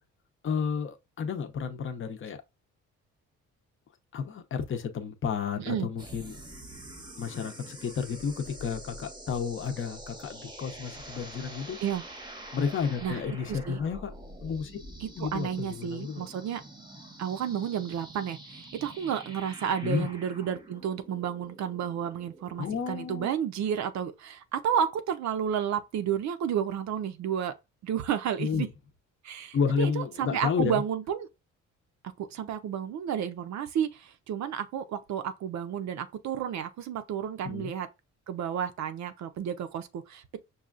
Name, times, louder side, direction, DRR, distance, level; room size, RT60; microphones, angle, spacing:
voice 1, 0.4-2.4 4.1-6.4 7.2-11.8 12.5-14.1 14.4-14.7 15.2-16.3 19.8-20.1 22.6-23.3 28.4-28.7 29.5-30.8 37.4-37.7, left 6 dB, 40° left, 0.7 m, -31 dB
sound 1, 6.0-22.8, right 1 dB, 15° right, 0.8 m, -46 dB
voice 2, 13.5-13.8 15.0-16.6 17.2-27.5 27.8-28.7 29.2-31.3 32.0-37.9 38.3-40.4, right 9 dB, 65° right, 0.6 m, -31 dB
5.4 x 2.3 x 2.4 m
cardioid pair, 90°, 30 cm